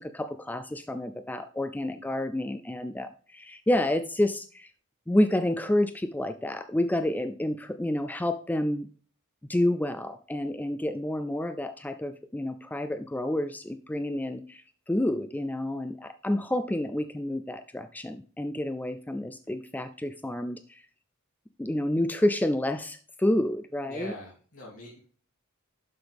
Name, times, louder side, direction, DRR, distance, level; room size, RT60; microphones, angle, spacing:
voice 1, 0.0-4.7 5.1-8.9 9.5-20.8 21.6-24.1, left 1 dB, 10° left, 10 dB, 0.4 m, -29 dB
voice 2, 23.9-25.0, left 1 dB, 75° left, -5 dB, 2.9 m, -42 dB
11.5 x 5.9 x 3.5 m, 0.43 s
head